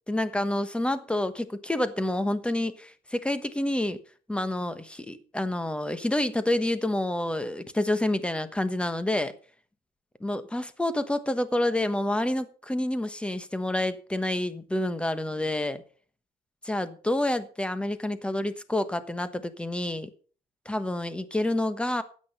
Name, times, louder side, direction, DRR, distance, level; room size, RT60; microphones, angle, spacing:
voice 1, 0.1-4.0 4.3-9.3 10.2-15.8 16.6-20.1 20.6-22.0, left 1 dB, 5° left, 1.3 m, -28 dB
12.5 x 8.7 x 5.5 m
cardioid pair, 110°, 17 cm